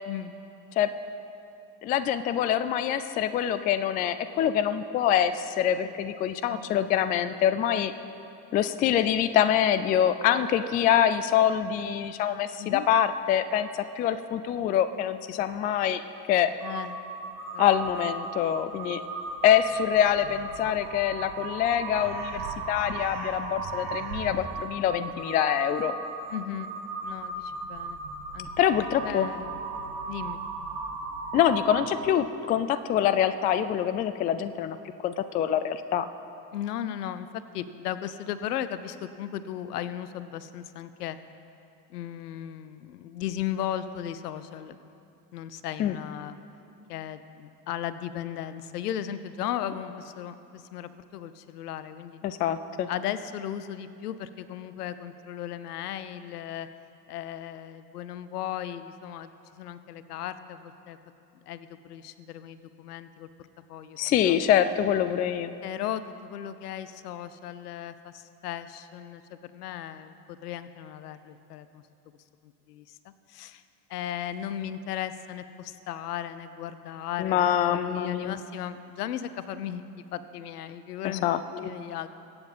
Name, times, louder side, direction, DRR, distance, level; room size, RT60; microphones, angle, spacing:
voice 1, 1.8-7.9 8.5-16.0 16.3-16.5 17.6-19.0 19.4-25.9 28.6-29.3 31.3-34.8 35.0-36.1 45.8-45.9 52.2-52.9 64.0-65.5 77.2-78.4 81.0-81.4, left 10 dB, 20° left, 12 dB, 0.3 m, -25 dB
voice 2, 6.5-7.1 12.6-12.9 16.6-17.0 17.5-17.6 26.3-26.7 27.0-28.0 28.3-28.5 29.0-29.6 30.1-30.4 36.5-41.2 41.9-44.8 45.3-46.4 46.9-52.2 52.9-56.7 57.1-61.0 61.5-63.3 63.7-64.4 65.6-71.8 72.4-73.6 73.9-77.4 77.7-79.8 80.1-82.1, left 10 dB, 70° left, 13 dB, 0.7 m, -36 dB
Crow, 16.6-32.1, right 3 dB, 75° right, 1.9 m, -36 dB
22.5 x 8.7 x 4.1 m, 2.7 s
figure-of-eight pair, 65°, 48 cm